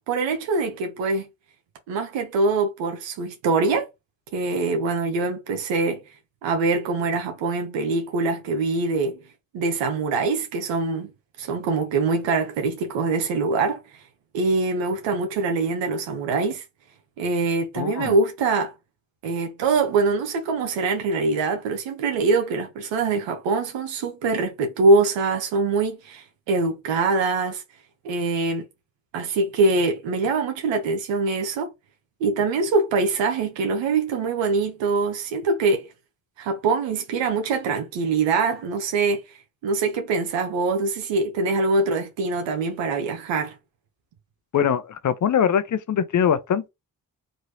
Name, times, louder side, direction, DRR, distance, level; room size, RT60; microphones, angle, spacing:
voice 1, 0.1-1.3 1.9-3.9 4.3-6.0 6.4-9.2 9.5-11.1 11.4-13.8 14.3-16.6 17.2-18.7 19.2-27.6 28.0-28.7 29.1-31.7 32.2-35.9 36.4-39.2 39.6-43.6, right 3 dB, 80° right, 0.8 m, -23 dB
voice 2, 17.8-18.1 44.5-46.7, left 8 dB, 45° left, 0.7 m, -22 dB
3.1 x 2.7 x 2.7 m
hypercardioid pair, 40°, 44 cm